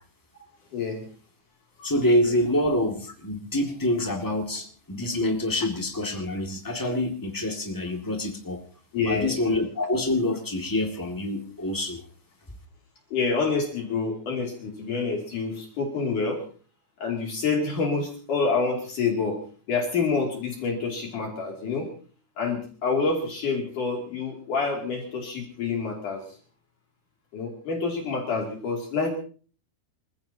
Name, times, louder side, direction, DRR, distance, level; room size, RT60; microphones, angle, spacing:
voice 1, 0.7-1.0 1.8-1.9 4.0-4.1 8.9-9.3 13.1-16.4 17.0-19.4 19.7-21.9 22.4-26.2 27.3-29.1, left 4 dB, 50° left, 0 dB, 4.0 m, -27 dB
voice 2, 1.8-8.6 9.0-12.0, left 1 dB, 15° left, 2 dB, 0.6 m, -26 dB
28.5 x 15.5 x 2.9 m, 0.41 s
omnidirectional pair, 4.8 m